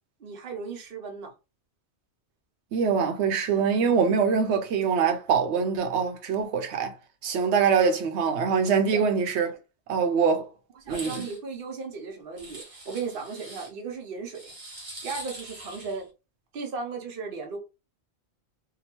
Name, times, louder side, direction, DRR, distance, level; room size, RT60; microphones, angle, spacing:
voice 1, 0.2-1.3 8.9-9.0 10.8-14.5 15.0-16.1 16.5-17.6, right 4 dB, 60° right, 0.9 m, -36 dB
voice 2, 2.7-7.0 7.2-9.5 9.9-10.5 10.9-11.2, right 6 dB, 90° right, 0.9 m, -24 dB
sound 1, 10.8-11.4 12.4-13.7 14.3-16.0, right 2 dB, 35° right, 0.9 m, -42 dB
2.8 x 2.2 x 2.9 m
omnidirectional pair, 1.1 m